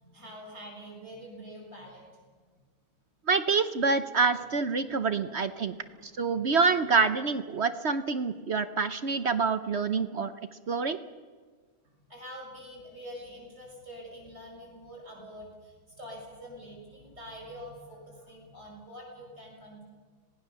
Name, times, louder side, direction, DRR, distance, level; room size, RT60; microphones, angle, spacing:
voice 1, 0.0-2.0 4.3-4.5 4.8-5.3 5.7-6.6 11.8-19.8, equal, 40° right, -1 dB, 7.3 m, -46 dB
voice 2, 3.3-5.7 6.0-10.3 10.7-11.0, right 4 dB, 55° right, 11 dB, 0.7 m, -26 dB
26.5 x 18.5 x 7.0 m, 1.5 s
omnidirectional pair, 2.1 m